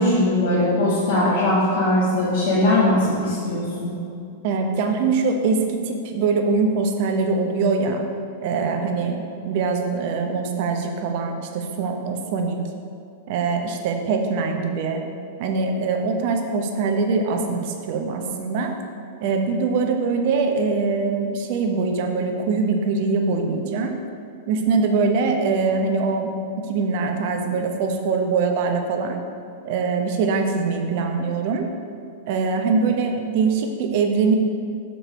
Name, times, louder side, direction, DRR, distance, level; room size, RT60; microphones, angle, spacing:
voice 1, 0.0-3.9, left 1 dB, 65° left, -9 dB, 1.6 m, -20 dB
voice 2, 4.4-8.0 8.4-9.2 9.4-12.6 13.3-15.0 15.4-18.7 19.2-24.0 24.5-26.3 26.7-29.2 29.6-31.7 32.3-34.3, right 4 dB, 55° right, 4 dB, 0.8 m, -23 dB
6.4 x 4.6 x 5.2 m, 2.5 s
hypercardioid pair, 105°, 0 cm